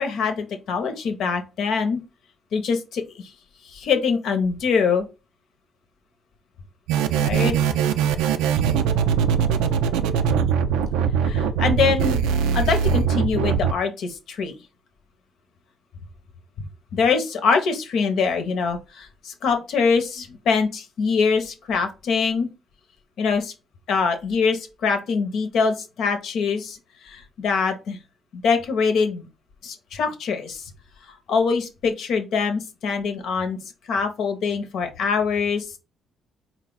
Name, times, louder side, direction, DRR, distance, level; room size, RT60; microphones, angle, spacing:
voice 1, 0.0-2.0 2.5-3.3 3.6-5.1 7.2-7.6 11.2-12.2 12.5-14.6 16.9-22.5 23.2-23.5 23.9-26.8 27.0-28.0 28.3-29.3 29.6-30.7 31.3-35.8, left 5 dB, 70° left, 6 dB, 0.9 m, -24 dB
sound 1, 6.9-13.7, right 7 dB, 85° right, 0.4 m, -21 dB
4.2 x 2.4 x 3.9 m, 0.28 s
supercardioid pair, 60°, 0 cm